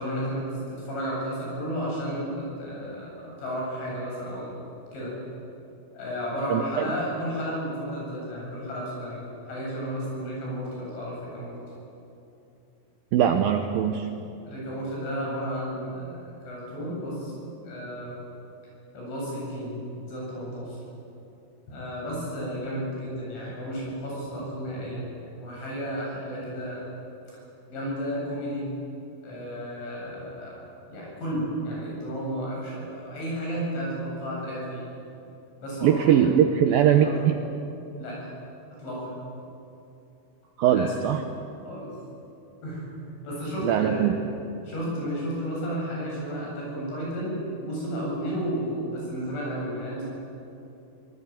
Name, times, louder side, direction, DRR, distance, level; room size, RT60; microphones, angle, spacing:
voice 1, 0.0-4.6 4.9-5.1 5.9-11.6 14.5-17.3 17.6-18.2 19.0-19.8 20.0-20.8 21.7-26.8 27.7-28.7 29.2-30.6 30.9-34.8 35.6-36.3 36.9-37.1 38.0-38.3 38.8-39.2 40.7-40.9 41.6-41.9 42.6-43.0 43.2-44.1 44.7-50.0, equal, 85° left, -4 dB, 10.5 m, -32 dB
voice 2, 6.5-6.9 13.1-14.1 35.8-37.4 40.6-41.2 43.6-44.1, right 9 dB, 80° right, 6 dB, 2.1 m, -21 dB
24.5 x 19.5 x 9.0 m, 2.8 s
omnidirectional pair, 5.2 m